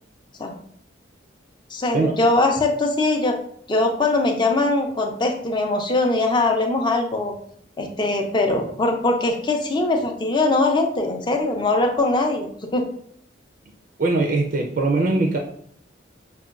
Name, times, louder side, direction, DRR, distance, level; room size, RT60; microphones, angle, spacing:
voice 1, 1.7-3.3 3.7-7.3 7.8-12.8, left 2 dB, 25° left, 3 dB, 0.4 m, -21 dB
voice 2, 14.0-15.4, right 3 dB, 50° right, 1 dB, 0.4 m, -21 dB
5.5 x 2.2 x 2.4 m, 0.62 s
head